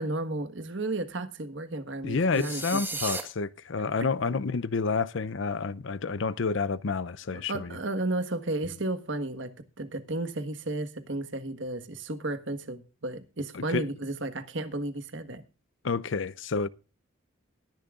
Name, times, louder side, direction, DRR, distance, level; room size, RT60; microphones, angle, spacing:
voice 1, 0.0-3.1 7.5-15.4, right 2 dB, 60° right, 1.4 m, -33 dB
voice 2, 2.0-7.8 13.5-13.9 15.8-16.7, left 4 dB, 60° left, 0.6 m, -29 dB
sound 1, 2.3-3.2, right 3 dB, 10° right, 1.5 m, -34 dB
20.5 x 10.5 x 2.4 m
head